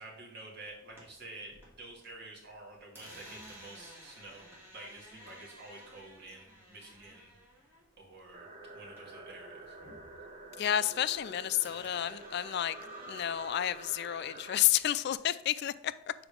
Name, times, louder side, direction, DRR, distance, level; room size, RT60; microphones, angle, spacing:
voice 1, 0.0-4.5 4.7-7.3 8.0-8.5 8.7-9.8, right 2 dB, 60° right, 2.4 m, -49 dB
sound 1, 0.9-2.1 2.4-9.3 9.6-11.3 11.6-15.1, equal, 10° right, 2.5 m, -55 dB
sound 2, 8.3-14.6, right 2 dB, 35° right, 1.3 m, -48 dB
voice 2, 10.6-12.8 13.1-15.9, left 12 dB, 60° left, 0.3 m, -30 dB
6.9 x 4.8 x 5.1 m
head